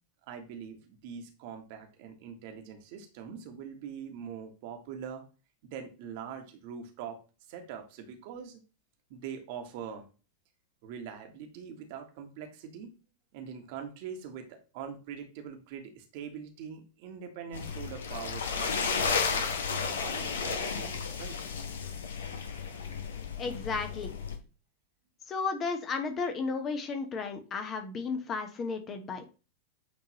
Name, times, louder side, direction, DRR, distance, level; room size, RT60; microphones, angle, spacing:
voice 1, 0.3-5.2 5.6-7.2 7.5-8.6 9.1-10.1 10.8-12.9 13.3-21.4, right 7 dB, 50° right, 4 dB, 1.4 m, -43 dB
sound 1, 17.5-24.3, left 5 dB, 65° left, 1.1 m, -33 dB
voice 2, 23.4-24.1 25.3-29.2, left 4 dB, 25° left, 6 dB, 1.1 m, -33 dB
8.6 x 3.8 x 3.0 m, 0.33 s
figure-of-eight pair, 90°, 0 cm